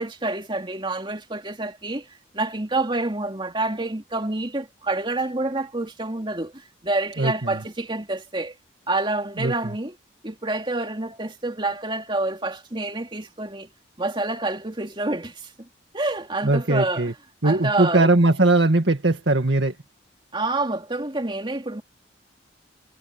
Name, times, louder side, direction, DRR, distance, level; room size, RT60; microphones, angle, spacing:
voice 1, 0.0-2.1 2.3-8.5 8.9-9.9 10.2-13.7 14.0-15.7 15.9-17.1 17.4-18.1 20.3-21.8, right 2 dB, 25° right, 2.8 m, -28 dB
voice 2, 7.2-7.6 9.4-9.7 16.4-17.1 17.4-19.8, right 2 dB, 65° right, 2.0 m, -20 dB
head